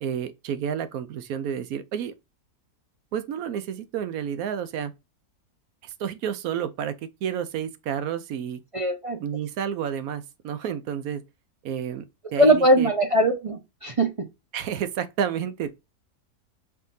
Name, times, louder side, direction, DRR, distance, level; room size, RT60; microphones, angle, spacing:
voice 1, 0.0-2.1 3.1-4.9 5.8-7.0 7.2-8.6 9.2-11.2 11.6-12.0 12.3-12.9 14.5-15.7, right 8 dB, 75° right, 1.0 m, -30 dB
voice 2, 8.7-9.2 12.4-14.1, right 1 dB, 50° right, 0.4 m, -20 dB
5.5 x 2.8 x 2.6 m
omnidirectional pair, 1.6 m